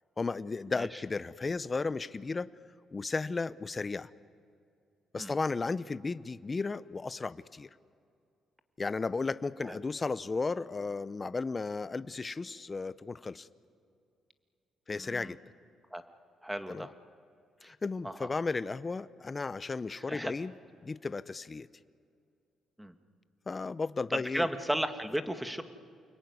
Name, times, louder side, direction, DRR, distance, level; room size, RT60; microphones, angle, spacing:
voice 1, 0.2-2.5 2.9-4.1 5.1-7.7 8.8-13.5 14.9-15.4 16.7-16.9 17.6-20.5 20.8-21.7 23.5-24.5, left 4 dB, 30° left, 16 dB, 0.8 m, -34 dB
voice 2, 14.9-15.3 15.9-16.0 16.4-16.9 17.6-17.7 18.0-18.3 19.9-20.3 22.8-23.0 24.1-25.6, right 1 dB, 5° right, 9 dB, 1.7 m, -35 dB
29.0 x 21.0 x 9.6 m, 2.4 s
cardioid pair, 90°, 0 cm